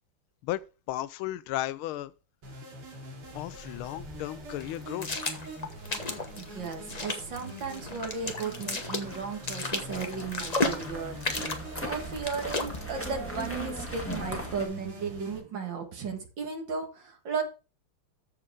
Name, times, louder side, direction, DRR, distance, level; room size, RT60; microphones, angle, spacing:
voice 1, 0.4-2.1 3.3-5.2, left 15 dB, 80° left, 1.4 m, -35 dB
sound 1, 2.4-15.4, right 1 dB, 80° right, 3.3 m, -44 dB
sound 2, 3.2-14.3, left 3 dB, 30° left, 0.8 m, -36 dB
voice 2, 6.4-17.4, right 5 dB, 60° right, 2.4 m, -35 dB
sound 3, 8.5-14.6, equal, 5° left, 1.4 m, -40 dB
14.0 x 4.8 x 3.5 m
omnidirectional pair, 2.4 m